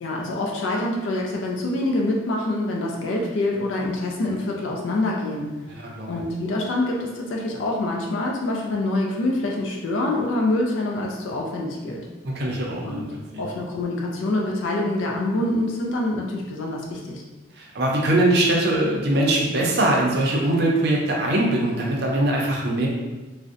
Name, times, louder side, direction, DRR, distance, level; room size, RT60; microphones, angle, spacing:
voice 1, 0.0-5.5 6.1-12.1 12.8-13.1 13.4-17.2, left 2 dB, 75° left, -1 dB, 0.3 m, -25 dB
voice 2, 5.7-6.2 12.2-13.5 17.6-22.9, right 1 dB, 55° right, -2 dB, 0.5 m, -22 dB
2.5 x 2.0 x 2.5 m, 1.1 s
head